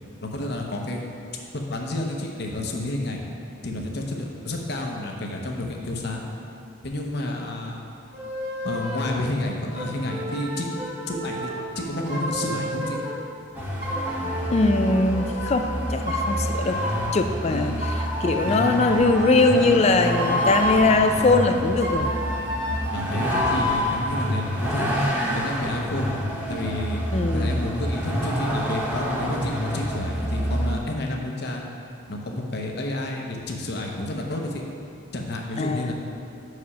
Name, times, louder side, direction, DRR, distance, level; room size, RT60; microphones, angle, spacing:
voice 1, 0.2-1.0 1.5-3.2 3.6-6.2 6.8-7.8 8.6-10.7 11.1-11.5 11.8-13.0 17.5-17.8 18.4-18.6 21.1-21.5 22.9-25.1 25.3-26.1 26.5-27.0 27.3-31.6 32.1-34.6 35.1-35.9, left 1 dB, 55° left, 1 dB, 0.8 m, -30 dB
sound 1, 8.1-9.1 9.7-13.1 13.8-15.7 16.1-17.1 17.8-21.1 21.8-24.0, left 1 dB, 30° right, 1.6 m, -30 dB
Vehicle, 13.5-30.8, equal, 10° right, 0.7 m, -28 dB
voice 2, 14.5-16.8 17.1-17.7 18.2-22.1 27.1-27.6 35.6-35.9, left 3 dB, 30° left, 6 dB, 0.3 m, -21 dB
6.1 x 4.9 x 5.5 m, 2.5 s
head